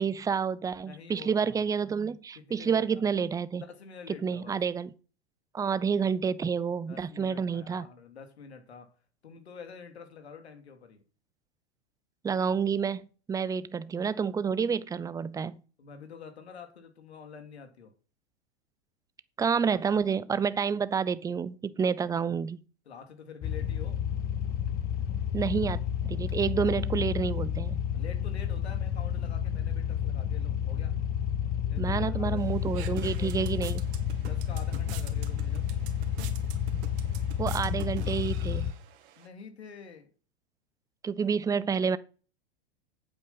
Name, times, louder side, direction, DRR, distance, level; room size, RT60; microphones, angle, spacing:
voice 1, 0.0-3.6 4.2-4.9 5.5-7.9 12.2-15.6 19.4-22.6 25.3-27.8 31.8-33.8 37.4-38.7 41.0-42.0, right 6 dB, 10° right, 0.6 m, -29 dB
voice 2, 0.8-1.6 2.3-3.1 3.6-4.6 6.9-8.9 9.2-11.0 15.8-17.9 22.8-24.0 26.6-27.0 27.9-31.0 31.7-32.4 32.8-33.6 34.2-35.7 39.2-40.1, left 6 dB, 80° left, 2.9 m, -47 dB
sound 1, 23.4-38.7, left 9 dB, 30° left, 1.0 m, -31 dB
sound 2, 32.4-39.3, right 11 dB, 55° right, 2.1 m, -46 dB
8.8 x 8.0 x 5.7 m
hypercardioid pair, 110°, 32 cm